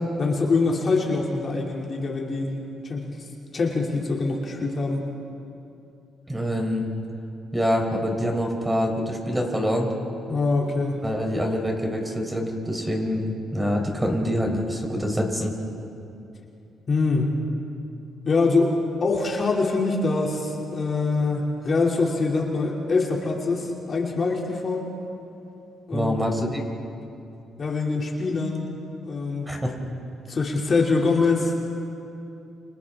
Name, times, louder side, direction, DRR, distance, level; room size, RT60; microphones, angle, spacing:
voice 1, 0.2-2.6 2.8-3.1 3.5-5.1 10.3-11.0 16.9-17.4 18.2-18.7 19.0-24.9 25.9-26.1 27.6-28.6 29.0-29.5 30.3-31.5, left 3 dB, 45° left, -1 dB, 3.0 m, -24 dB
voice 2, 6.3-6.9 7.5-9.9 11.0-15.5 25.9-26.6 29.5-29.8, equal, 10° right, 1 dB, 4.0 m, -25 dB
29.5 x 26.5 x 3.8 m, 2.7 s
cardioid pair, 90°, 0 cm